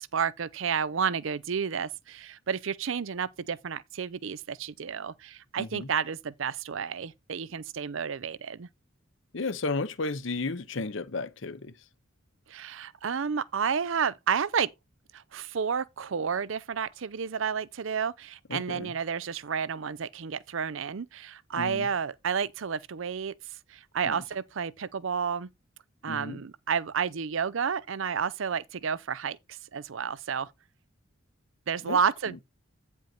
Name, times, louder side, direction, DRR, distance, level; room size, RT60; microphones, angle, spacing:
voice 1, 0.0-8.7 12.5-14.7 15.1-23.4 23.7-25.5 26.0-30.5 31.7-32.4, right 6 dB, 65° right, 0.5 m, -31 dB
voice 2, 5.6-5.9 9.3-11.7 18.5-18.9 21.5-21.9 24.1-24.2 26.1-26.4 31.9-32.0, left 3 dB, 60° left, 0.8 m, -33 dB
9.2 x 5.3 x 4.3 m
head